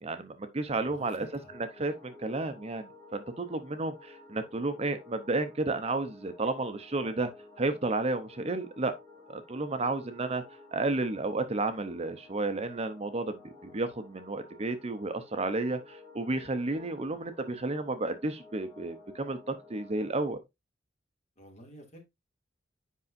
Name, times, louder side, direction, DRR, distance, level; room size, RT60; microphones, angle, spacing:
voice 1, 0.0-1.3 1.8-7.3 7.6-8.9 9.3-10.4 10.7-20.4, right 2 dB, 35° right, 0.6 m, -32 dB
sound 1, 0.7-20.3, left 3 dB, 10° left, 2.9 m, -53 dB
voice 2, 0.8-1.5 21.4-22.0, equal, 40° left, 2.3 m, -51 dB
8.3 x 5.3 x 2.5 m
head